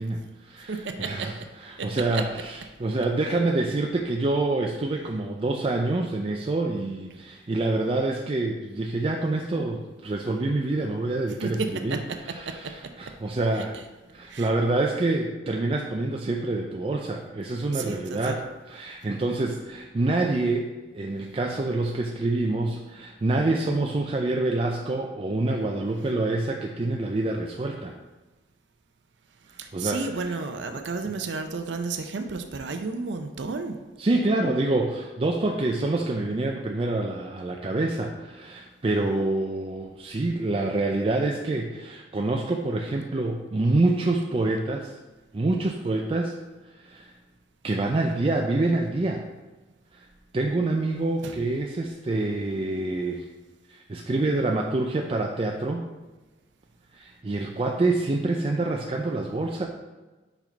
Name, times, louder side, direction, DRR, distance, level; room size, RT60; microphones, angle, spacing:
voice 1, 0.0-12.0 12.2-13.7 14.1-18.4 18.7-27.9 29.7-30.0 31.0-31.1 34.0-45.0 45.3-46.3 46.7-47.1 47.6-49.2 49.9-50.1 50.3-53.3 53.7-55.9 56.9-59.7, right 2 dB, 30° right, 1 dB, 0.4 m, -26 dB
voice 2, 0.7-1.4 1.8-2.2 11.4-12.8 14.3-14.5 17.7-18.4 29.6-33.8 51.2-51.4, right 4 dB, 80° right, 7 dB, 0.6 m, -32 dB
5.4 x 4.8 x 4.4 m, 1.2 s
head